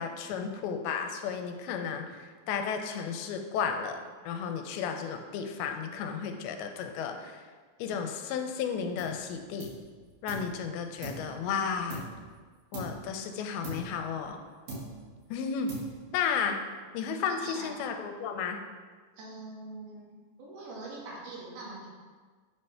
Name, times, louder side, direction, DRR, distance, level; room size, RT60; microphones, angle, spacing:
voice 1, 0.0-4.0 4.2-7.5 7.8-9.7 10.2-12.1 12.7-14.4 15.3-15.7 16.1-16.6 16.9-18.6, left 6 dB, 85° left, 5 dB, 2.5 m, -33 dB
sound 1, 9.0-9.3 9.6-10.6 11.0-12.4 12.7-13.1 13.6-14.4 14.7-15.2 15.7-16.2, right 2 dB, 60° right, 2.6 m, -42 dB
voice 2, 17.4-17.7 19.2-20.1 20.4-21.9, right 2 dB, 85° right, -5 dB, 3.7 m, -43 dB
8.0 x 3.3 x 5.6 m, 1.5 s
omnidirectional pair, 4.4 m